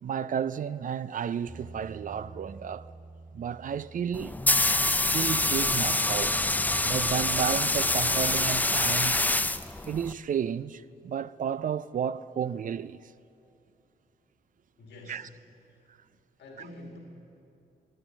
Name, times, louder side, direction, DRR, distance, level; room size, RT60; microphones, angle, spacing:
voice 1, 0.0-2.9 3.3-4.4 5.1-6.4 6.8-9.3 9.8-13.1 15.1-15.3 16.6-16.7, right 8 dB, 50° right, 0.4 m, -32 dB
Bass guitar, 1.5-7.7, right 3 dB, 25° right, 2.5 m, -50 dB
sound 1, 4.1-10.1, left 2 dB, 10° left, 0.4 m, -26 dB
voice 2, 14.8-15.2 16.4-17.0, left 1 dB, 85° left, 2.0 m, -46 dB
14.0 x 9.2 x 7.1 m
cardioid pair, 65°, 17 cm